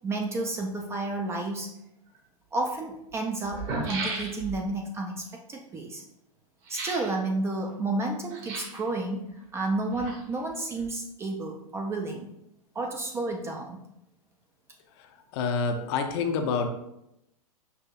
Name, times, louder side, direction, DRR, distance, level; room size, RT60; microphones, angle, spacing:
voice 1, 0.0-1.7 2.5-6.0 6.7-12.3 12.8-13.8, right 2 dB, 15° right, 2 dB, 0.3 m, -31 dB
sound 1, 2.1-2.2 3.1-3.2 3.4-4.7 6.6-7.1 8.3-8.9 9.7-10.5 10.8-10.9, right 3 dB, 40° right, 1.2 m, -35 dB
voice 2, 15.0-16.7, left 5 dB, 45° left, 6 dB, 0.5 m, -28 dB
5.5 x 2.6 x 2.4 m, 0.83 s
hypercardioid pair, 110°, 19 cm